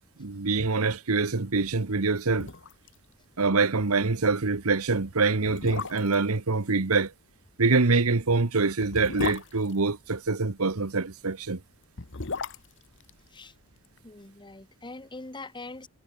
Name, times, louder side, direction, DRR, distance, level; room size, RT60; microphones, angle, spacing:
voice 1, 0.2-2.5 3.4-7.1 7.6-11.6, right 3 dB, 70° right, 1.2 m, -25 dB
sound 1, 1.9-2.0 2.3-3.0 3.2-3.3 3.7-3.9 4.6-4.7 5.4-6.3 7.8-10.5 11.7-14.0 14.2-14.3, left 4 dB, 55° left, 1.4 m, -36 dB
voice 2, 14.0-15.9, left 2 dB, 20° left, 1.4 m, -42 dB
head